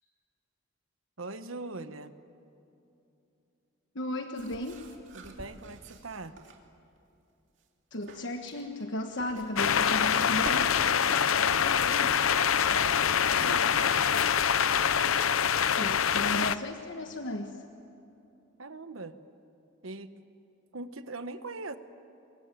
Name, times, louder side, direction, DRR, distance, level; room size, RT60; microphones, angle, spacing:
voice 1, 1.2-2.1 5.1-6.3 11.3-14.1 18.6-19.1 19.8-20.1 20.7-21.8, right 3 dB, 80° right, 10 dB, 1.3 m, -41 dB
voice 2, 3.9-4.9 7.9-10.7 15.7-17.6, left 1 dB, 60° left, 4 dB, 1.3 m, -35 dB
sound 1, 4.4-6.6 7.9-11.7, right 2 dB, 60° right, 2.7 m, -46 dB
sound 2, 9.6-16.6, left 8 dB, 80° left, 0.7 m, -25 dB
25.0 x 22.5 x 9.2 m, 2.7 s
head